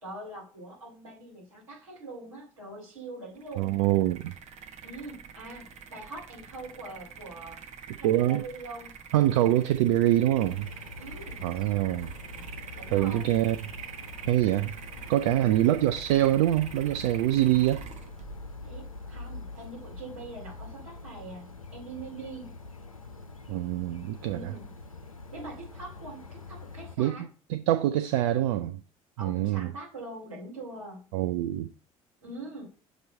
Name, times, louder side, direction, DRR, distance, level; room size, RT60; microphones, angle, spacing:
voice 1, 0.0-3.8 4.8-7.6 8.0-9.0 11.0-11.4 12.7-13.3 15.3-15.6 18.6-22.5 24.3-24.7 25.3-27.3 29.2-31.1 32.2-32.6, right 2 dB, 80° right, 2.8 m, -43 dB
sound 1, 3.4-19.7, right 7 dB, 45° right, 1.0 m, -46 dB
voice 2, 3.6-4.3 8.0-8.4 9.1-10.7 11.4-12.1 12.9-13.6 14.3-14.7 15.1-17.8 23.5-24.5 27.0-28.8 29.2-29.7 31.1-31.7, right 13 dB, 65° right, 0.4 m, -25 dB
sound 2, 10.4-27.0, left 3 dB, 90° left, 0.4 m, -44 dB
6.4 x 3.0 x 5.3 m
figure-of-eight pair, 55°, 17 cm